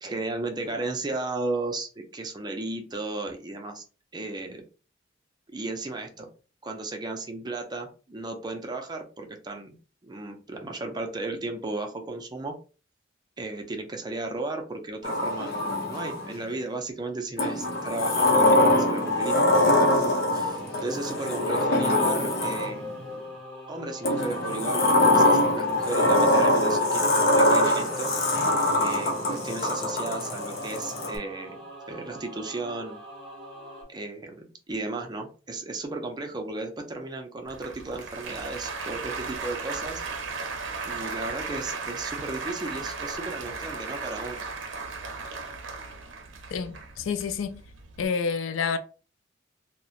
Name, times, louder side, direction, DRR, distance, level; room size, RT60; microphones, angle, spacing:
voice 1, 0.0-3.8 4.1-4.6 5.5-6.3 6.6-9.8 10.0-12.6 13.4-19.4 20.3-23.0 23.7-24.9 25.1-28.2 28.7-33.0 33.9-40.0 40.8-44.4, right 2 dB, 20° right, 0.4 m, -35 dB
Sliding door, 15.0-16.4 17.4-22.9 24.0-31.2, left 1 dB, 55° left, 0.7 m, -23 dB
Singing / Musical instrument, 20.5-33.8, left 2 dB, 5° left, 1.4 m, -41 dB
Applause, 37.5-48.1, right 4 dB, 70° right, 0.5 m, -36 dB
voice 2, 46.5-47.6 48.0-48.8, left 5 dB, 90° left, 0.3 m, -29 dB
2.8 x 2.1 x 2.4 m
head